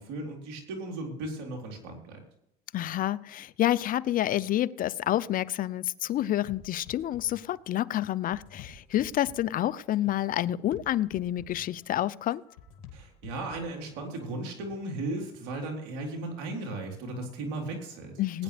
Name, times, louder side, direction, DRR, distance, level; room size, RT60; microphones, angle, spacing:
voice 1, 0.0-2.2 12.9-18.1 18.3-18.4, right 2 dB, 80° right, 3.9 m, -36 dB
voice 2, 2.7-12.4 18.2-18.4, left 13 dB, 45° left, 0.5 m, -28 dB
sound 1, 6.5-14.9, left 6 dB, 80° left, 2.2 m, -51 dB
20.0 x 9.9 x 3.4 m
supercardioid pair, 90°, 19 cm